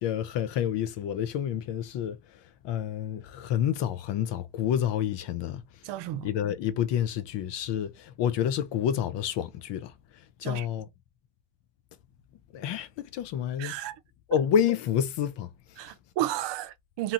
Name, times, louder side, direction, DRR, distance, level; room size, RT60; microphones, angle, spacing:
voice 1, 0.0-5.6 6.2-10.9 12.5-13.8 14.3-15.9, left 9 dB, 65° left, 0.7 m, -29 dB
voice 2, 5.8-6.3 10.4-10.7 13.6-14.0 15.8-17.1, right 13 dB, 65° right, 0.6 m, -32 dB
2.8 x 2.3 x 2.8 m
supercardioid pair, 70°, 46 cm